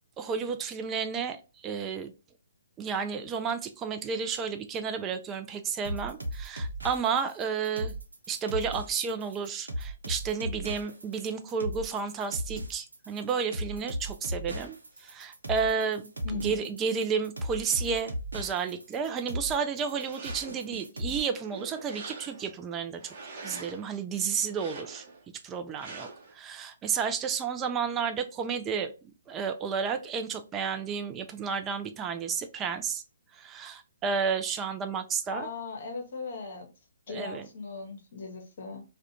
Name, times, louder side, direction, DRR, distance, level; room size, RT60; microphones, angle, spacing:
voice 1, 0.2-1.4 1.6-2.1 2.8-7.9 8.3-14.8 15.0-23.1 23.4-25.0 25.4-26.1 26.3-28.9 29.3-33.0 33.3-35.5 37.1-37.4, right 6 dB, 20° right, 0.3 m, -31 dB
sound 1, 5.8-21.2, equal, 85° right, 0.7 m, -37 dB
voice 2, 16.2-16.7 35.3-36.7 37.1-38.8, left 4 dB, 55° left, 0.8 m, -38 dB
sound 2, 19.8-20.7 21.2-22.6 23.0-23.9 24.4-25.2 25.8-26.3, right 3 dB, 40° right, 0.7 m, -44 dB
2.4 x 2.1 x 2.8 m
figure-of-eight pair, 135°, 0 cm